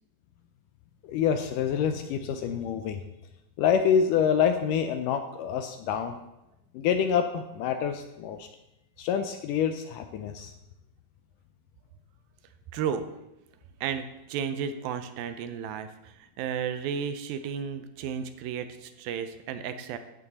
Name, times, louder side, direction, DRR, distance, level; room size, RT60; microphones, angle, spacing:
voice 1, 1.0-3.0 3.6-6.1 6.7-8.5 9.0-10.5, left 7 dB, 80° left, 8 dB, 2.0 m, -26 dB
voice 2, 12.7-13.0 13.8-20.0, right 7 dB, 80° right, 9 dB, 2.5 m, -33 dB
13.5 x 8.3 x 4.1 m, 0.90 s
omnidirectional pair, 4.2 m